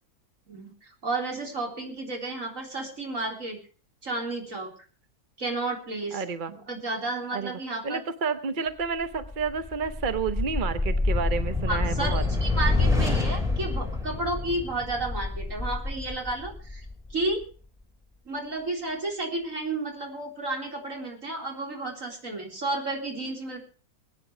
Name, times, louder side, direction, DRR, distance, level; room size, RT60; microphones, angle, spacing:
voice 1, 0.5-3.6 4.0-4.7 5.4-6.2 6.5-8.0 11.7-16.8 17.1-17.4 18.3-23.6, right 2 dB, 55° right, 1 dB, 4.2 m, -32 dB
voice 2, 6.1-6.5 7.3-7.5 7.8-12.2, right 5 dB, 40° right, 10 dB, 0.8 m, -30 dB
sound 1, 9.0-17.4, left 3 dB, ahead, 2.8 m, -27 dB
21.5 x 9.3 x 5.0 m, 0.38 s
omnidirectional pair, 1.6 m